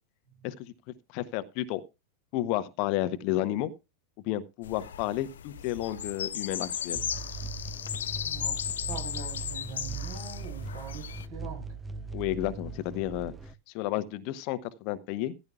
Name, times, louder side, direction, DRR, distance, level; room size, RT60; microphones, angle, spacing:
voice 1, 1.1-1.8 2.3-3.7 4.3-7.0 12.1-13.3 13.7-15.3, left 14 dB, 45° left, 0.9 m, -31 dB
sound 1, 4.6-11.3, left 9 dB, 65° left, 0.5 m, -36 dB
sound 2, 7.0-13.5, right 4 dB, 15° right, 0.7 m, -39 dB
voice 2, 8.2-8.6 8.9-11.7, right 5 dB, 55° right, 6.8 m, -43 dB
15.5 x 10.5 x 2.3 m
figure-of-eight pair, 90°, 0 cm